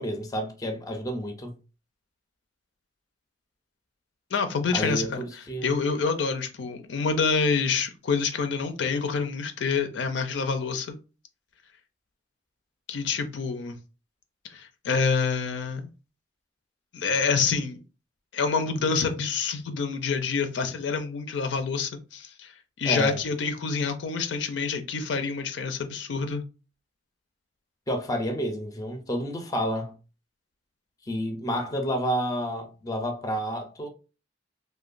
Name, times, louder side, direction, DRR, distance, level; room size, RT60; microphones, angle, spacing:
voice 1, 0.0-1.6 4.7-5.8 22.8-23.2 27.9-29.9 31.1-33.9, equal, 20° left, 0.4 m, -29 dB
voice 2, 4.3-5.2 5.6-11.0 12.9-13.8 14.5-15.9 16.9-17.8 18.3-22.5 22.8-26.4, left 5 dB, 75° left, 0.4 m, -27 dB
2.9 x 2.2 x 2.4 m
head